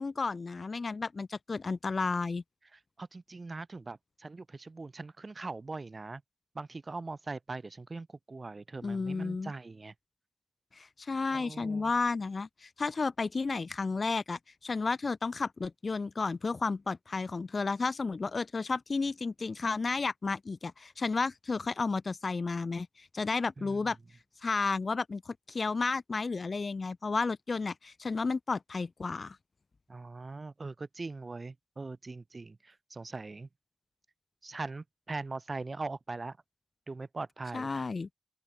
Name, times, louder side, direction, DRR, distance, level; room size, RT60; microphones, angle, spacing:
voice 1, 0.0-2.4 8.8-9.5 10.7-24.0 24.4-29.4 37.5-38.1, left 4 dB, 40° left, 1.6 m, -32 dB
voice 2, 2.7-6.2 6.5-9.9 11.3-11.9 23.6-23.9 29.9-33.5 34.4-36.4 36.9-37.9, right 3 dB, 30° right, 5.0 m, -41 dB
open air
wide cardioid pair, 100°, 0 cm